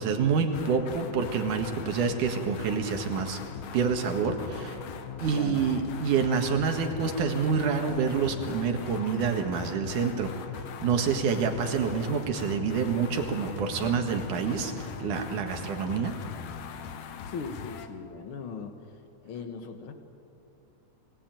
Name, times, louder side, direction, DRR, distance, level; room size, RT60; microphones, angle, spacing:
voice 1, 0.0-3.4 3.7-4.8 5.2-10.3 10.8-14.7 15.0-16.2, right 6 dB, 80° right, 5 dB, 3.2 m, -27 dB
sound 1, 0.5-17.9, left 7 dB, 65° left, 2.3 m, -40 dB
voice 2, 5.3-5.7 17.3-18.8 19.2-19.9, left 5 dB, 50° left, 7 dB, 2.1 m, -39 dB
22.5 x 18.5 x 9.2 m, 2.7 s
omnidirectional pair, 3.6 m